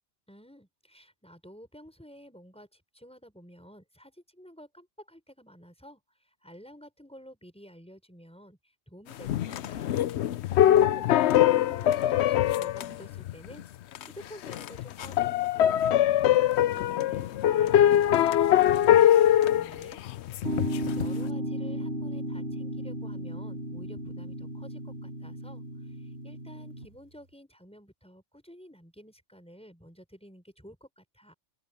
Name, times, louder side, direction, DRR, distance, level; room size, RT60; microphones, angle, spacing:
voice 1, 0.3-6.0 6.4-8.6 8.9-10.0 10.7-11.1 11.5-13.7 14.0-16.3 16.7-20.0 21.0-31.3, equal, 5° left, 5.8 m, -51 dB
sound 1, 9.2-13.6 13.9-14.1 14.4-21.1, left 11 dB, 75° left, 0.9 m, -23 dB
sound 2, 20.4-26.9, equal, 60° right, 5.6 m, -34 dB
open air
omnidirectional pair, 1.2 m